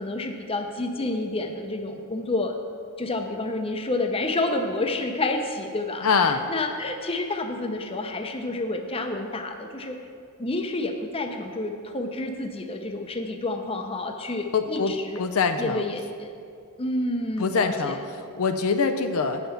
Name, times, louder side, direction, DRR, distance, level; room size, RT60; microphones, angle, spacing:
voice 1, 0.0-2.6 3.0-10.0 10.4-15.2 15.6-16.3 16.8-18.0, left 2 dB, 25° left, 5 dB, 0.7 m, -29 dB
voice 2, 6.0-6.5 14.5-15.8 17.4-18.0 18.4-19.4, left 5 dB, 65° left, 8 dB, 0.5 m, -24 dB
8.5 x 5.8 x 6.9 m, 2.4 s
head